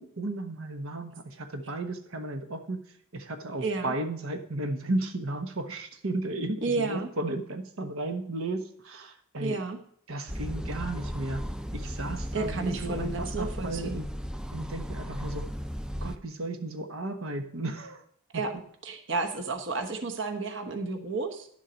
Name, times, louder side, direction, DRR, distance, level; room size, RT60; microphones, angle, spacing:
voice 1, 0.0-2.8 3.1-9.6 10.1-11.4 11.7-14.1 14.5-15.4 16.0-18.0, right 2 dB, 80° right, 6 dB, 1.1 m, -34 dB
voice 2, 3.6-3.9 6.6-7.1 9.4-9.8 12.3-14.0 18.3-18.5 18.8-21.5, right 3 dB, 60° right, 5 dB, 1.1 m, -31 dB
sound 1, 10.3-16.2, equal, 5° right, 0.4 m, -35 dB
11.0 x 7.3 x 5.2 m, 0.65 s
head